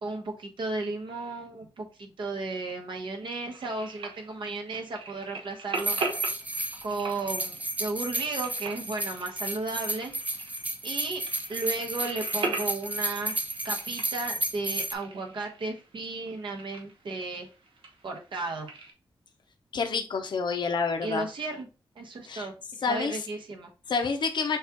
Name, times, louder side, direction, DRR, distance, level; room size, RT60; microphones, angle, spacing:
voice 1, 0.0-6.0 6.8-10.1 10.8-11.2 11.5-13.4 13.6-17.5 18.0-18.7 21.0-21.7 21.9-22.5 22.8-23.7, right 3 dB, 70° right, 2 dB, 1.1 m, -34 dB
sound 1, 3.5-18.9, right 3 dB, 85° right, 1.3 m, -40 dB
sound 2, 5.7-14.9, right 1 dB, 15° right, 0.6 m, -32 dB
voice 2, 19.7-21.3 22.3-22.5 22.8-23.3 23.9-24.6, left 5 dB, 60° left, 5 dB, 0.7 m, -28 dB
6.4 x 2.4 x 3.0 m, 0.32 s
wide cardioid pair, 100°, 9 cm